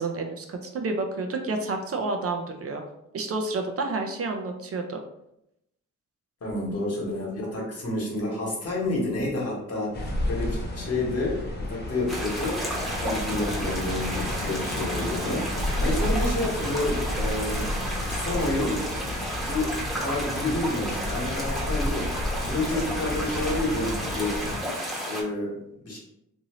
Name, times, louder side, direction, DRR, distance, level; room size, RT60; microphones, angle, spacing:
voice 1, 0.0-2.8 3.1-5.0, right 3 dB, 45° right, 4 dB, 0.4 m, -30 dB
voice 2, 6.4-17.7 18.1-24.4 25.1-25.6 25.8-26.0, left 2 dB, 50° left, -3 dB, 1.2 m, -30 dB
sound 1, 9.9-24.6, left 1 dB, 30° left, 0.7 m, -31 dB
sound 2, 12.1-25.2, right 1 dB, ahead, 0.8 m, -32 dB
2.7 x 2.6 x 2.9 m, 0.81 s
cardioid pair, 100°, 32 cm